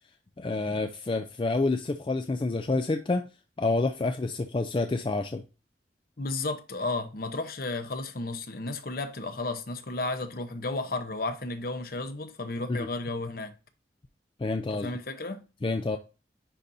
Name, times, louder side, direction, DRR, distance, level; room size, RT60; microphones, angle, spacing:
voice 1, 0.4-3.2 3.6-5.4 12.7-12.9 14.4-14.9 15.6-16.0, left 3 dB, 30° left, 0.4 m, -28 dB
voice 2, 6.2-13.5 14.7-15.4, left 2 dB, 55° left, 0.8 m, -33 dB
10.0 x 4.1 x 2.6 m
head